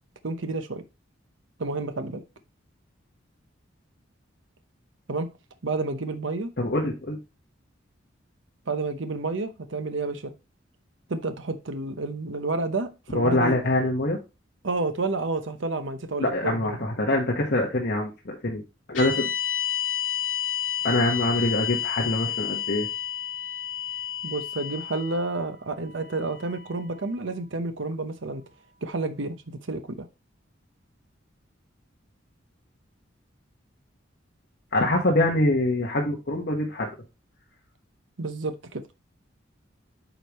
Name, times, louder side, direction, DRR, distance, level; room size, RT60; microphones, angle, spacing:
voice 1, 0.2-0.8 1.6-2.2 5.1-5.3 5.6-6.5 8.7-10.3 11.1-13.6 14.6-16.8 24.2-28.4 28.8-30.1 38.2-38.8, right 3 dB, 70° right, 9 dB, 0.9 m, -30 dB
voice 2, 6.6-7.2 13.1-14.2 16.2-18.6 18.9-19.3 20.8-22.9 34.7-36.9, left 1 dB, 55° left, -1 dB, 1.4 m, -24 dB
sound 1, 18.9-27.2, left 11 dB, 70° left, 2.3 m, -31 dB
9.0 x 5.1 x 3.1 m, 0.27 s
head